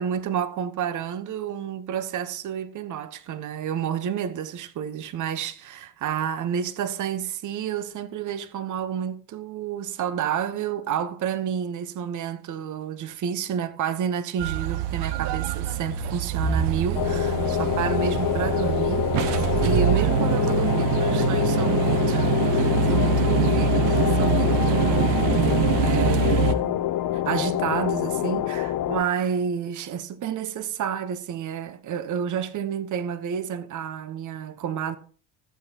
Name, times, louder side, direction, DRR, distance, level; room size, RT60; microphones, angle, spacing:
voice 1, 0.0-19.1 19.3-26.8 27.1-35.0, right 8 dB, 35° right, 1.1 m, -30 dB
sound 1, 14.4-26.5, right 5 dB, 55° right, 1.2 m, -24 dB
sound 2, 16.9-29.0, left 12 dB, 40° left, 0.8 m, -26 dB
15.0 x 7.9 x 2.9 m
hypercardioid pair, 70°, 50 cm